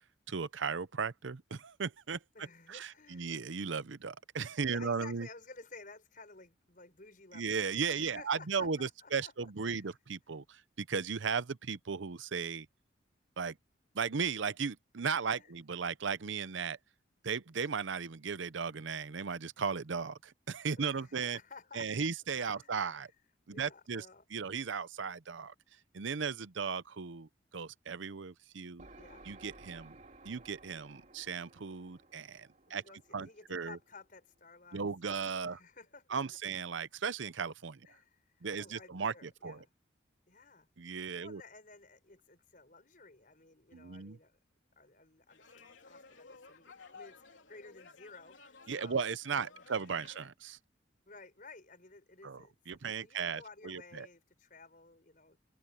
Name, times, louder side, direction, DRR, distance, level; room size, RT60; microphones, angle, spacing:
voice 1, 0.3-2.2 2.7-5.3 7.3-12.7 13.4-13.6 13.9-16.8 17.2-21.4 21.7-23.1 23.5-24.0 24.3-25.5 25.9-28.9 29.2-30.0 30.2-32.8 33.1-33.8 34.7-35.6 36.1-37.9 38.4-39.6 40.8-41.4 43.7-44.2 48.7-50.6 52.2-54.1, right 5 dB, 80° right, 0.7 m, -36 dB
voice 2, 2.3-3.4 4.6-9.8 15.3-15.5 20.8-22.1 22.5-23.1 23.5-24.5 29.0-29.3 32.7-36.4 37.8-39.7 40.3-40.7 40.9-44.4 44.7-49.7 50.0-50.1 51.1-55.4, left 3 dB, 45° left, 5.1 m, -55 dB
sound 1, 28.8-34.4, right 2 dB, 40° right, 3.5 m, -57 dB
sound 2, 45.3-50.3, left 4 dB, 80° left, 3.3 m, -56 dB
head